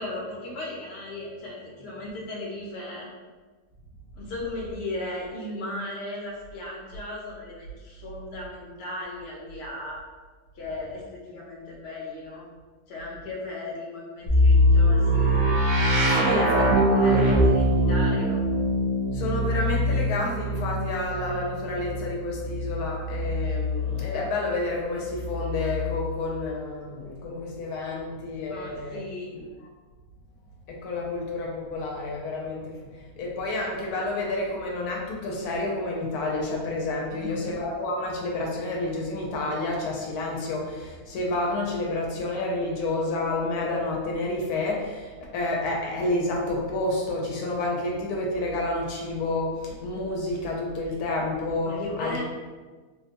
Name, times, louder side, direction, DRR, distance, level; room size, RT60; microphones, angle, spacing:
voice 1, 0.0-3.1 4.1-10.0 10.5-12.5 12.9-15.4 16.1-18.4 28.5-29.3 37.2-37.6 51.6-52.2, left 2 dB, 50° left, -4 dB, 0.9 m, -36 dB
sound 1, 14.3-24.1 25.1-26.1, equal, 90° right, 1.3 m, -23 dB
voice 2, 16.0-16.7 17.1-17.4 17.8-18.0 19.1-29.0 29.3-29.4 30.7-52.2, left 2 dB, 85° left, -1 dB, 1.1 m, -29 dB
3.7 x 2.1 x 2.8 m, 1.3 s
omnidirectional pair, 1.6 m